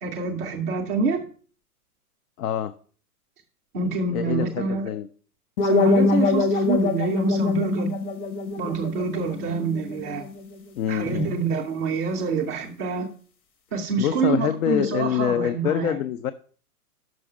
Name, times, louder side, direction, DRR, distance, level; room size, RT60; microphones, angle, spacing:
voice 1, 0.0-1.2 3.7-4.9 5.6-7.9 8.6-10.2 10.9-13.1 13.7-16.0, right 4 dB, 15° right, -1 dB, 0.3 m, -26 dB
voice 2, 2.4-2.7 4.1-5.1 10.8-11.3 14.0-16.3, left 10 dB, 70° left, 11 dB, 0.6 m, -25 dB
sound 1, 5.6-10.5, left 3 dB, 35° left, 0.9 m, -24 dB
6.2 x 5.2 x 6.0 m, 0.43 s
hypercardioid pair, 120°, 46 cm